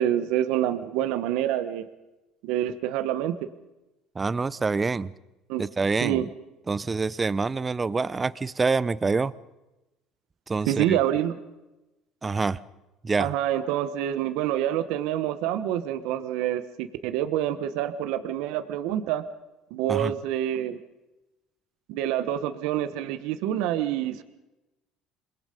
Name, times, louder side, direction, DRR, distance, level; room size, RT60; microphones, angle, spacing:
voice 1, 0.0-1.9 2.4-3.4 5.5-5.6 6.0-6.2 10.7-11.4 13.2-19.2 19.7-20.8 21.9-24.2, right 11 dB, 75° right, 11 dB, 1.3 m, -27 dB
voice 2, 4.1-5.1 5.6-6.3 6.7-9.3 10.5-11.0 12.2-12.6 13.0-13.3 19.9-20.1, right 4 dB, 25° right, 18 dB, 0.9 m, -26 dB
27.5 x 21.0 x 5.3 m, 1.0 s
supercardioid pair, 85°, 0 cm